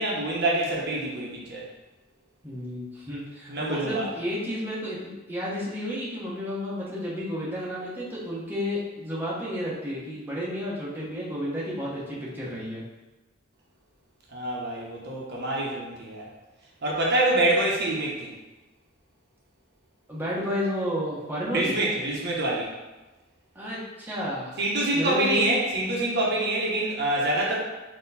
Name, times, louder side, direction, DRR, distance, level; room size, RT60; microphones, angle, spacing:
voice 1, 0.0-1.6 3.5-4.1 14.3-16.2 16.8-18.3 21.5-22.7 24.6-27.6, right 2 dB, 60° right, -4 dB, 1.1 m, -26 dB
voice 2, 2.4-12.8 20.1-21.7 23.5-24.6 24.9-25.4, left 1 dB, 10° right, -7 dB, 1.0 m, -31 dB
4.4 x 3.0 x 4.1 m, 1.1 s
head